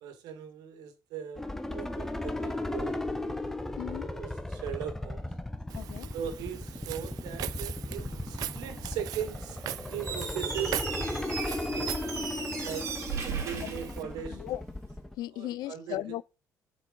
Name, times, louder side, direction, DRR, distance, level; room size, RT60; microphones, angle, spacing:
voice 1, 0.0-3.0 3.8-5.3 6.1-9.6 9.9-10.9 11.7-12.0 12.6-12.9 13.2-14.4 15.4-16.0, right 9 dB, 85° right, 1.9 m, -39 dB
sound 1, 1.4-15.1, left 2 dB, 5° left, 0.8 m, -36 dB
voice 2, 3.8-4.1 5.7-6.1 13.3-13.8 14.3-14.6 15.2-16.2, left 14 dB, 80° left, 0.5 m, -37 dB
Walk footsteps, 5.7-14.0, right 13 dB, 70° right, 0.4 m, -41 dB
Squeak, 10.0-14.6, right 5 dB, 45° right, 2.6 m, -37 dB
7.5 x 5.1 x 5.3 m
cardioid pair, 145°, 7 cm